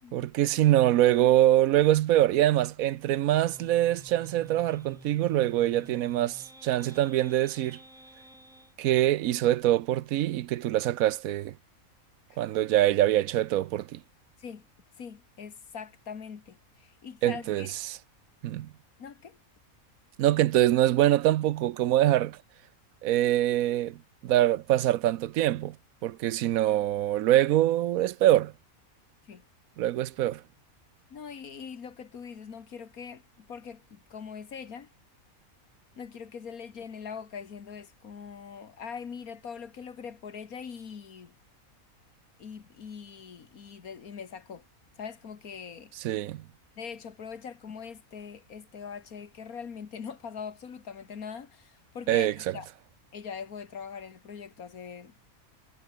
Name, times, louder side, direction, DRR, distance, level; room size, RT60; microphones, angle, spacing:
voice 1, 0.1-7.8 8.8-11.5 12.4-14.0 17.2-18.0 18.4-18.7 20.2-22.4 23.0-25.8 26.0-28.5 29.8-30.4 46.0-46.4 52.1-52.6, right 13 dB, 75° right, 1.0 m, -24 dB
sound 1, 3.3-8.7, equal, ahead, 1.5 m, -51 dB
voice 2, 15.0-17.7 19.0-19.4 29.3-29.4 31.1-34.9 36.0-41.3 42.4-44.6 45.0-45.9 46.8-52.7 53.1-55.1, left 6 dB, 80° left, 2.1 m, -42 dB
omnidirectional pair, 1.5 m